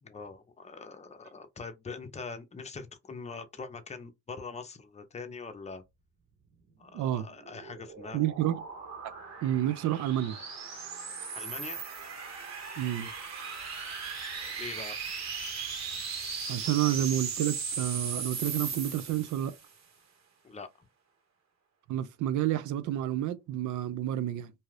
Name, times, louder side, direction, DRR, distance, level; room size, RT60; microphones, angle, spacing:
voice 1, 0.0-5.8 6.8-8.2 11.3-11.8 14.3-15.0 20.4-20.7, left 4 dB, 20° left, 0.6 m, -43 dB
voice 2, 6.9-7.3 8.1-8.6 9.4-10.4 12.8-13.1 16.5-19.6 21.9-24.5, right 12 dB, 75° right, 0.5 m, -29 dB
sound 1, 7.3-19.7, right 5 dB, 60° right, 1.2 m, -38 dB
2.7 x 2.4 x 3.2 m
cardioid pair, 90°, 30 cm